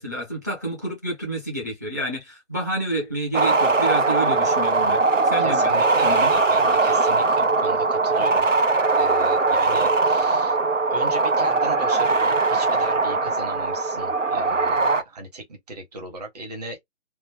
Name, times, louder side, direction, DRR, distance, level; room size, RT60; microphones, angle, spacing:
voice 1, 0.0-5.7 6.0-6.3, right 1 dB, 15° right, 0.5 m, -29 dB
sound 1, 3.3-15.0, right 3 dB, 85° right, 0.8 m, -20 dB
voice 2, 5.4-8.5 9.0-10.6 10.9-16.8, right 2 dB, 35° right, 1.0 m, -37 dB
3.0 x 2.1 x 3.1 m
figure-of-eight pair, 145°, 37 cm